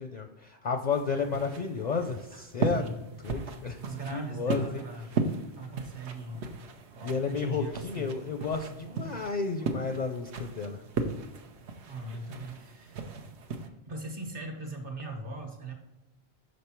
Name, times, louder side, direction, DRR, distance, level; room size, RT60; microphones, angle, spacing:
voice 1, 0.0-3.8 4.1-4.8 7.0-10.8, left 5 dB, 55° left, 6 dB, 0.5 m, -32 dB
sound 1, 0.9-13.7, right 4 dB, 85° right, 1.0 m, -37 dB
voice 2, 3.8-5.1 5.6-6.5 7.2-8.1 11.9-13.0 13.8-15.7, right 2 dB, 55° right, 3 dB, 1.5 m, -39 dB
6.3 x 5.3 x 4.4 m, 1.0 s
omnidirectional pair, 1.1 m